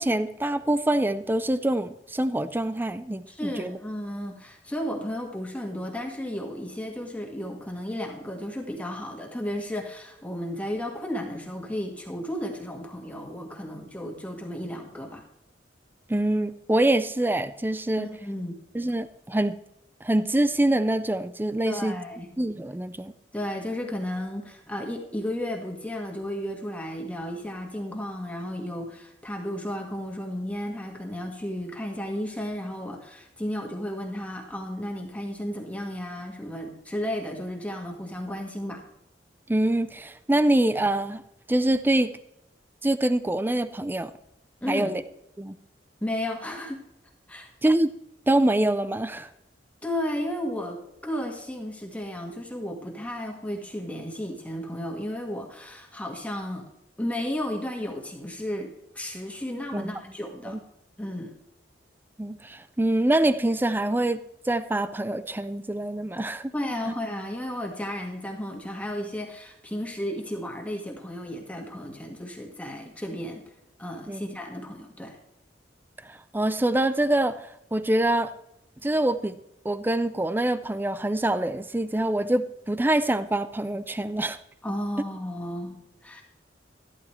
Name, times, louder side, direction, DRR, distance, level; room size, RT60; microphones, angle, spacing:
voice 1, 0.0-3.8 16.1-18.1 18.7-19.6 20.0-22.0 22.4-23.1 39.5-41.2 41.5-42.1 42.8-44.1 44.7-45.0 45.4-45.5 47.6-47.9 48.3-49.3 59.7-60.0 60.5-60.6 62.2-64.2 64.5-66.5 74.1-74.2 76.1-77.4 77.7-78.3 78.8-79.4 79.6-84.4, right 1 dB, 10° right, 13 dB, 0.5 m, -25 dB
voice 2, 3.3-15.2 18.0-18.6 21.6-22.3 23.3-38.8 44.6-45.0 46.0-46.8 47.3-47.5 49.8-56.7 57.0-60.6 61.0-61.3 66.5-73.4 73.8-75.2 84.6-86.2, left 1 dB, 10° left, 1 dB, 1.8 m, -33 dB
13.5 x 12.5 x 3.3 m, 0.82 s
head